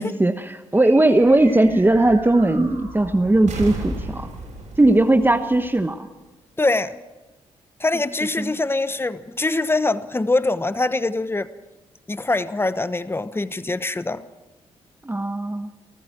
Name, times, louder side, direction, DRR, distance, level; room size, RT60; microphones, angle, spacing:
voice 1, 0.0-4.3 4.8-6.1 8.4-8.5 15.0-15.7, right 2 dB, 15° right, 7 dB, 1.2 m, -18 dB
sound 1, 0.8-6.5, right 2 dB, 70° right, 7.2 m, -36 dB
voice 2, 6.6-7.0 7.8-11.5 12.1-14.3, left 2 dB, 15° left, 13 dB, 1.1 m, -23 dB
29.5 x 14.0 x 6.2 m, 1.1 s
hypercardioid pair, 45°, 14 cm